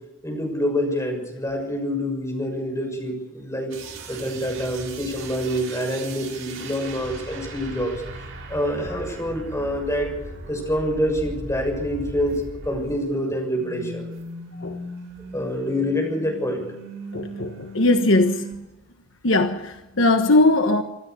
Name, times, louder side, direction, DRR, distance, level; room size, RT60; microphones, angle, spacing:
voice 1, 0.2-3.7 4.1-7.9 8.5-10.1 10.5-14.1 15.3-16.6, equal, 15° left, 6.7 m, -26 dB
sound 1, 3.7-13.2 13.5-18.5, right 1 dB, 75° right, 5.9 m, -38 dB
voice 2, 17.1-18.5 19.2-20.8, left 2 dB, 70° left, 1.3 m, -19 dB
26.5 x 13.0 x 8.4 m
head